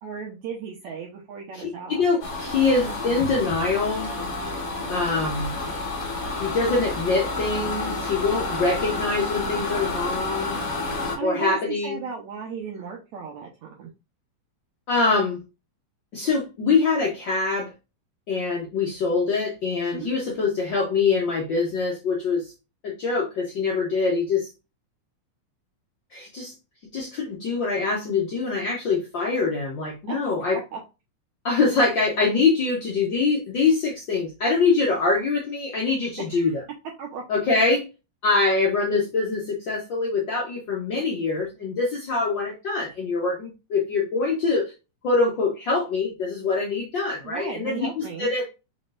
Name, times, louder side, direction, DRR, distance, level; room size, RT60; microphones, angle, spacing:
voice 1, 0.0-2.0 11.2-13.9 19.9-20.1 30.1-30.8 36.3-36.5 37.0-37.2 47.2-48.3, right 6 dB, 70° right, -1 dB, 2.1 m, -36 dB
voice 2, 1.5-4.1 4.9-5.5 6.4-10.6 11.2-12.0 14.9-15.4 16.1-17.7 18.3-22.5 22.8-24.5 26.1-26.5 26.9-30.6 31.4-36.6 37.3-37.8 38.2-44.7 45.0-48.4, left 4 dB, 85° left, -2 dB, 1.0 m, -24 dB
sound 1, 2.2-11.2, left 2 dB, 40° left, 1.3 m, -30 dB
5.2 x 3.9 x 2.5 m, 0.27 s
omnidirectional pair, 3.7 m